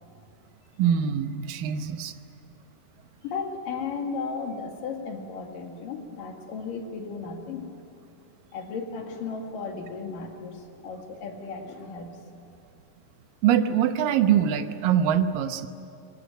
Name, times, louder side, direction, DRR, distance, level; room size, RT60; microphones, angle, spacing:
voice 1, 0.8-2.1 13.4-15.7, right 9 dB, 80° right, 9 dB, 2.7 m, -23 dB
voice 2, 3.2-7.7 8.5-12.1, left 4 dB, 70° left, 3 dB, 3.8 m, -35 dB
22.5 x 21.5 x 9.2 m, 2.6 s
omnidirectional pair, 4.0 m